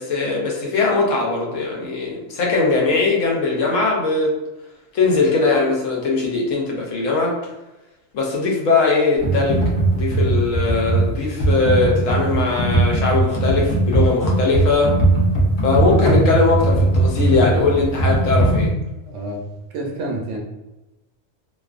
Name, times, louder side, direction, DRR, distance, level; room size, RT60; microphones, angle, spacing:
voice 1, 0.0-4.4 4.9-7.4 8.1-15.0 15.6-18.7, left 3 dB, 75° left, -1 dB, 1.0 m, -20 dB
Computer keyboard, 9.2-18.7, right 2 dB, 45° left, 0.7 m, -18 dB
voice 2, 19.0-19.4 19.7-20.4, right 1 dB, 70° right, -1 dB, 0.8 m, -28 dB
2.4 x 2.4 x 2.4 m, 1.0 s
omnidirectional pair, 1.4 m